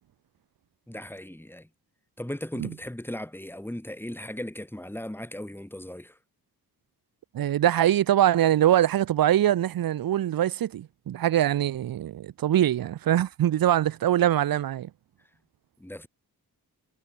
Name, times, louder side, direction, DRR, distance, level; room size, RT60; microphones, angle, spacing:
voice 1, 0.9-1.7 2.2-6.2 15.8-16.1, left 1 dB, 5° left, 3.5 m, -37 dB
voice 2, 7.3-14.9, right 12 dB, 65° right, 0.6 m, -23 dB
cardioid pair, 90°, 38 cm